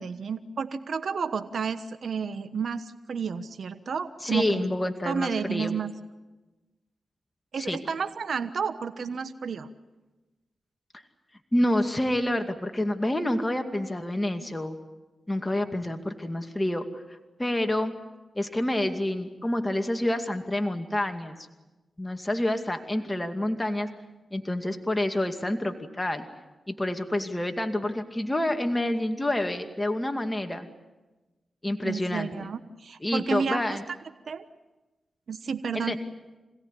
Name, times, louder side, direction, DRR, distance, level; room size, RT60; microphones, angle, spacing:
voice 1, 0.0-4.7 5.0-5.9 7.5-9.7 31.8-33.8 34.3-34.4 35.3-36.0, right 6 dB, 70° right, 10 dB, 1.2 m, -31 dB
voice 2, 4.2-5.8 7.6-7.8 11.5-14.8 15.3-17.0 17.4-17.9 18.3-21.3 22.0-23.9 24.3-26.3 26.7-30.7 31.6-32.5 33.0-33.8 35.7-36.0, left 1 dB, 20° left, 5 dB, 2.3 m, -28 dB
26.5 x 17.5 x 9.9 m, 1.1 s
cardioid pair, 55°, 0 cm